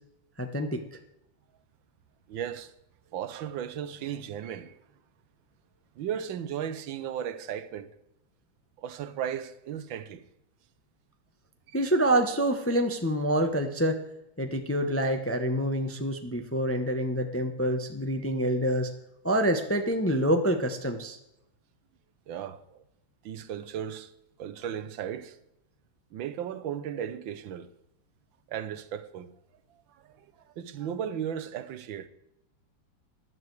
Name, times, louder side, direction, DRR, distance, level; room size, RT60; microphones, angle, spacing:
voice 1, 0.4-0.8 11.7-14.0 14.4-18.9 19.2-21.2, right 1 dB, 10° left, 0.6 m, -26 dB
voice 2, 2.3-2.7 3.1-4.8 6.0-7.9 8.8-10.2 11.7-11.8 18.2-18.3 22.3-22.8 23.2-24.1 24.4-25.4 26.1-27.7 28.5-29.3 29.7-30.3 30.6-32.1, right 9 dB, 80° right, 1.6 m, -36 dB
15.0 x 11.0 x 4.7 m
omnidirectional pair, 2.1 m